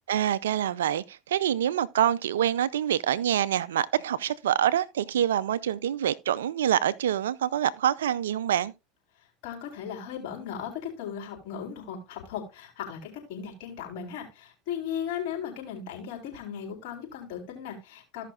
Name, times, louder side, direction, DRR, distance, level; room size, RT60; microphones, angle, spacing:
voice 1, 0.1-8.7, right 10 dB, 85° right, 0.5 m, -26 dB
voice 2, 9.4-18.2, left 8 dB, 65° left, 4.2 m, -37 dB
15.5 x 5.8 x 2.5 m
hypercardioid pair, 90°, 0 cm